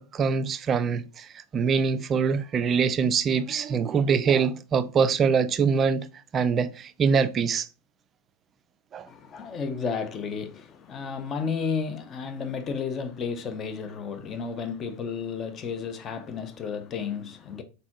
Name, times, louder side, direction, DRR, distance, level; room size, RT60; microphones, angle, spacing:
voice 1, 0.0-6.1 6.3-7.7 8.9-9.1, right 6 dB, 25° right, 0.4 m, -24 dB
voice 2, 9.1-17.6, left 5 dB, 25° left, 0.7 m, -32 dB
4.1 x 3.8 x 2.9 m
figure-of-eight pair, 90°, 0 cm